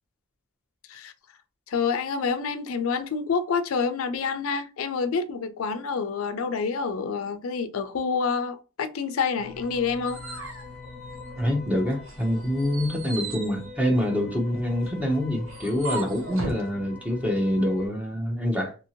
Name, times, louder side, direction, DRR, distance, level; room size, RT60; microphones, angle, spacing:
voice 1, 1.7-10.2, left 5 dB, 80° left, 0.4 m, -28 dB
sound 1, 9.4-17.9, left 4 dB, 20° left, 1.0 m, -43 dB
sound 2, 9.6-11.6 12.0-16.7, right 3 dB, 70° right, 0.8 m, -38 dB
voice 2, 11.4-18.8, equal, 5° right, 0.7 m, -26 dB
2.8 x 2.7 x 2.8 m
head